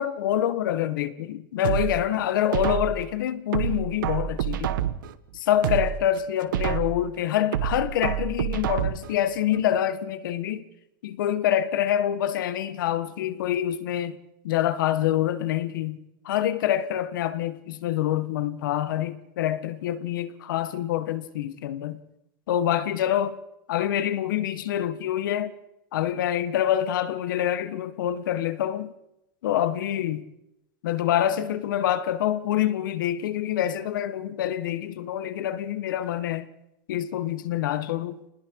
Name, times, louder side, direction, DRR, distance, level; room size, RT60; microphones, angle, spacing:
voice 1, 0.0-4.8 5.3-10.6 11.0-14.2 14.4-16.0 16.2-22.0 22.5-23.4 23.7-25.5 25.9-28.9 29.4-30.3 30.8-36.5 36.9-38.2, left 11 dB, 85° left, 1.6 m, -26 dB
sound 1, 1.6-3.1 3.5-5.1 5.5-7.1 7.5-9.1 9.5-9.6, right 11 dB, 90° right, 1.2 m, -28 dB
27.5 x 20.0 x 4.8 m
supercardioid pair, 175°, 11 cm